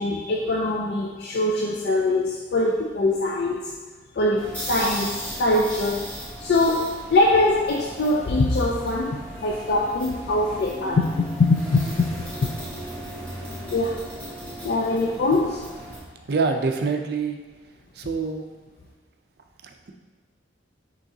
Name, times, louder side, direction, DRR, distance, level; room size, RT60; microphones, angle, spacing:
voice 1, 0.0-3.7 4.2-6.1 6.4-11.1 11.4-12.1 12.4-12.5 13.7-14.0 14.6-15.6, left 2 dB, 55° left, -2 dB, 0.4 m, -23 dB
sound 1, 4.3-16.0, equal, 10° left, 1.3 m, -36 dB
voice 2, 16.3-17.4 18.0-18.4 19.6-19.9, right 4 dB, 55° right, 4 dB, 0.4 m, -25 dB
6.0 x 3.0 x 2.8 m, 1.3 s
head